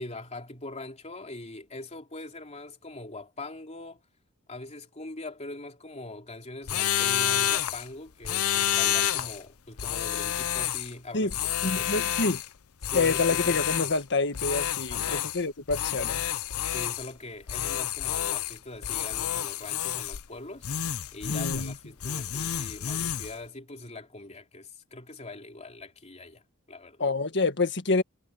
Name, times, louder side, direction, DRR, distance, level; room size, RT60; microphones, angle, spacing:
voice 1, 0.0-4.0 4.5-12.1 12.8-13.6 14.9-15.3 16.6-20.7 21.1-26.4 26.7-27.0, left 2 dB, 30° left, 3.6 m, -42 dB
sound 1, 6.7-7.9 8.2-9.4 9.8-10.9 11.3-12.5 12.8-14.0 14.3-15.4 15.7-17.1 17.5-18.6 18.8-20.3 20.6-21.8 22.0-23.3, left 11 dB, 70° left, 0.7 m, -29 dB
voice 2, 11.6-12.4 12.9-16.2 21.3-21.8 27.0-28.0, left 3 dB, 55° left, 1.7 m, -27 dB
head